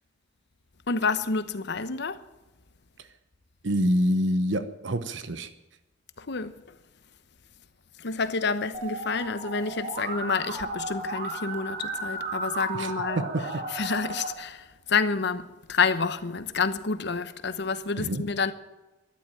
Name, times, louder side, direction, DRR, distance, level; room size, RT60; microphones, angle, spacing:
voice 1, 0.9-2.2 6.2-6.8 8.0-13.2 13.7-18.5, left 4 dB, 65° left, 1.0 m, -29 dB
voice 2, 3.6-5.5 12.7-13.6 18.0-18.2, equal, 70° right, 1.0 m, -27 dB
Musical instrument, 8.7-14.3, right 2 dB, 40° right, 3.0 m, -34 dB
13.0 x 11.0 x 8.9 m
head